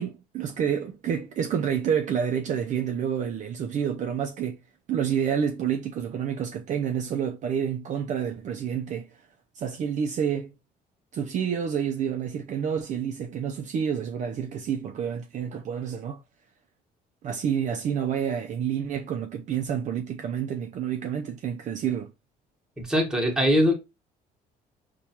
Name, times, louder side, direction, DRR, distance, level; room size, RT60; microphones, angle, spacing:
voice 1, 0.0-4.6 4.9-9.1 9.5-10.5 11.1-16.2 17.2-22.1, right 8 dB, 45° right, 0.4 m, -28 dB
voice 2, 22.8-23.7, equal, 5° right, 1.1 m, -22 dB
4.4 x 2.2 x 2.8 m
cardioid pair, 110°, 17 cm